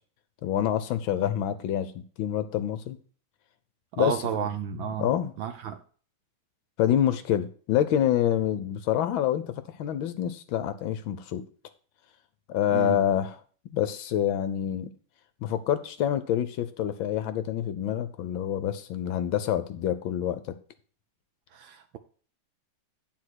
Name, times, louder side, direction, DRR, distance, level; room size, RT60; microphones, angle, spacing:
voice 1, 0.4-1.9 2.2-3.0 4.0-4.5 5.0-5.3 6.8-9.4 9.8-11.4 12.5-13.4 13.7-14.9 15.4-20.4, left 10 dB, 75° left, 1.3 m, -27 dB
voice 2, 3.9-5.1 5.4-5.8 12.7-13.0 21.5-22.0, right 9 dB, 70° right, 1.3 m, -32 dB
9.7 x 4.2 x 6.1 m
omnidirectional pair, 2.4 m